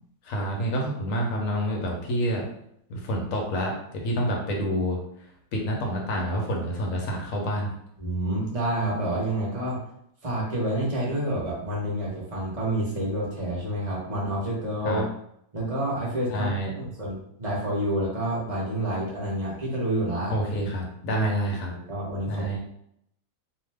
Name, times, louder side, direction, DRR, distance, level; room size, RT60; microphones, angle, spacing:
voice 1, 0.2-2.4 2.9-5.0 5.5-7.7 14.8-15.0 16.3-16.7 20.3-21.7 22.3-22.6, equal, 65° left, 0 dB, 0.9 m, -28 dB
voice 2, 8.0-9.8 10.2-15.0 15.5-16.5 16.8-20.3 21.1-21.3 21.7-22.6, right 1 dB, 30° right, -5 dB, 0.7 m, -28 dB
2.8 x 2.2 x 3.3 m, 0.73 s
omnidirectional pair, 1.9 m